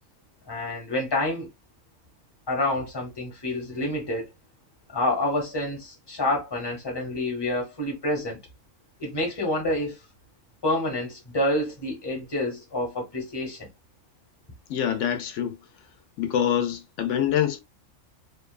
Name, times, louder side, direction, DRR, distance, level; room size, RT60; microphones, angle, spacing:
voice 1, 0.5-1.5 2.5-4.3 4.9-8.4 9.0-10.0 10.6-13.7, left 1 dB, 20° left, 1.0 m, -28 dB
voice 2, 14.7-15.6 16.2-17.6, left 10 dB, 70° left, 0.9 m, -25 dB
2.6 x 2.3 x 2.3 m
omnidirectional pair, 1.4 m